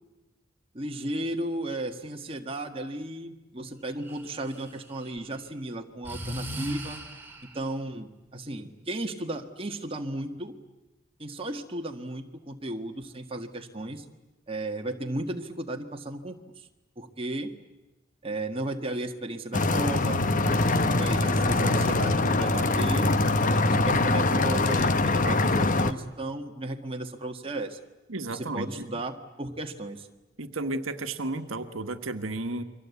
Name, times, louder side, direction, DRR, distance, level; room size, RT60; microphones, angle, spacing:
voice 1, 0.7-7.0 7.5-10.6 11.2-14.0 14.5-16.7 17.0-17.5 18.2-23.1 23.5-27.8 28.3-30.1, right 1 dB, 25° right, 3 dB, 1.7 m, -35 dB
Breathing, 4.0-5.2 6.0-7.6, right 1 dB, 10° right, 3.7 m, -38 dB
sound 1, 19.5-25.9, left 2 dB, 40° left, 1.0 m, -23 dB
voice 2, 28.1-28.9 30.4-32.6, right 2 dB, 80° right, 7 dB, 1.4 m, -33 dB
29.5 x 23.5 x 8.4 m, 1.1 s
head